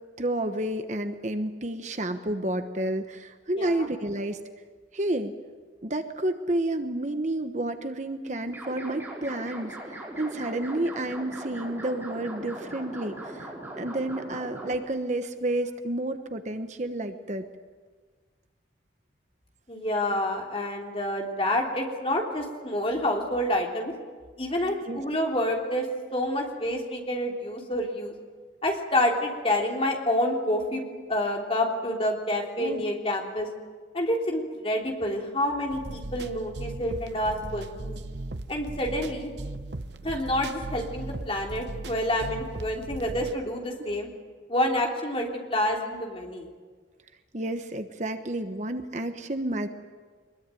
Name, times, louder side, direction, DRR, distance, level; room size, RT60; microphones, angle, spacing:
voice 1, 0.2-4.4 4.9-5.3 5.8-17.4 24.8-25.0 32.6-32.8 47.3-49.7, right 1 dB, 40° right, 8 dB, 1.1 m, -30 dB
voice 2, 3.6-3.9 19.7-23.9 24.4-28.1 28.6-33.5 33.9-37.9 38.5-39.3 40.0-44.1 44.5-46.5, left 1 dB, 30° left, 0 dB, 3.5 m, -28 dB
sound 1, 8.5-14.8, right 1 dB, 10° right, 5.8 m, -40 dB
sound 2, 35.7-43.4, right 2 dB, 65° right, 1.0 m, -38 dB
24.0 x 21.5 x 9.2 m, 1.5 s
head